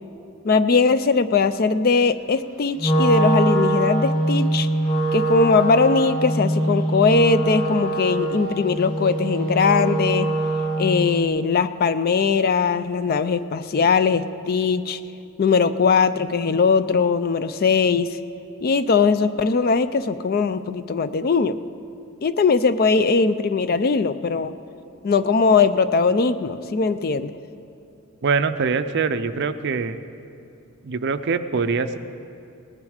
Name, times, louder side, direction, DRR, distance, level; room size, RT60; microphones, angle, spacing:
voice 1, 0.4-4.7 5.1-10.3 10.8-15.0 15.4-18.2 18.6-21.6 22.2-24.5 25.0-27.3, left 4 dB, 40° left, 13 dB, 0.4 m, -20 dB
Wind instrument woodwind instrument, 2.8-11.0, right 1 dB, 25° left, 2.6 m, -23 dB
voice 2, 28.2-30.0 30.8-32.0, right 5 dB, 50° right, 11 dB, 0.5 m, -23 dB
18.5 x 10.5 x 5.0 m, 2.6 s
head